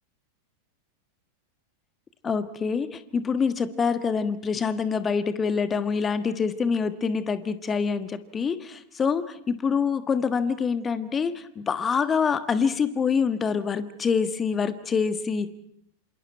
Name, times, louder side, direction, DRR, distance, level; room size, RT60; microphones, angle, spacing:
voice 1, 2.2-15.5, left 6 dB, 20° left, 11 dB, 1.4 m, -26 dB
27.5 x 27.0 x 4.5 m, 0.69 s
figure-of-eight pair, 90°, 0 cm